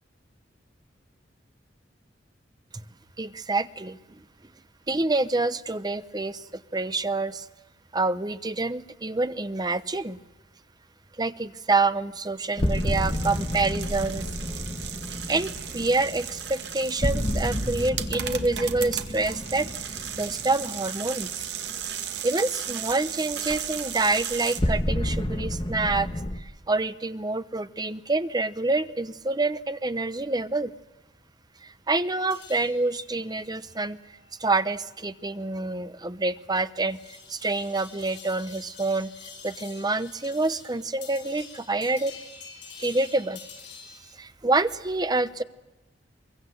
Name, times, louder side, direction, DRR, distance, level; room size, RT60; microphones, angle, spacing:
voice 1, 3.2-4.2 4.9-7.5 7.9-10.2 11.2-14.3 15.3-19.9 20.1-21.5 22.2-26.1 26.4-30.7 31.6-34.0 34.4-42.2 42.8-43.4 44.2-45.4, right 3 dB, 20° right, 12 dB, 0.8 m, -27 dB
sound 1, 12.6-21.6 24.6-26.4, left 1 dB, 30° left, 1.2 m, -30 dB
sound 2, 12.6-24.6, right 9 dB, 65° right, 1.9 m, -36 dB
sound 3, 32.3-44.1, left 6 dB, 80° left, 7.8 m, -48 dB
23.5 x 22.5 x 7.9 m, 1.1 s
head